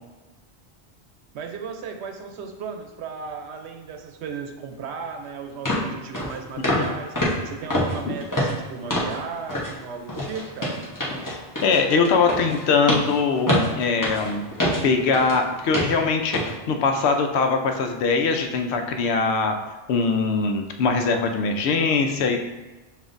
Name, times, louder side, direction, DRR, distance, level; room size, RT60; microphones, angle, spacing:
voice 1, 1.3-7.2 7.4-10.8, right 5 dB, 85° right, 5 dB, 0.9 m, -35 dB
sound 1, 5.0-5.1 5.7-5.9 6.1-6.3 6.6-6.9 7.2-9.2 9.5-9.7 10.1-15.4 15.7-16.0 16.3-16.5 17.0-17.1, left 1 dB, 20° left, 0.8 m, -26 dB
voice 2, 11.2-14.4 14.8-19.5 19.9-22.4, left 4 dB, 80° left, 5 dB, 0.8 m, -22 dB
6.9 x 2.6 x 2.5 m, 1.2 s
omnidirectional pair, 1.1 m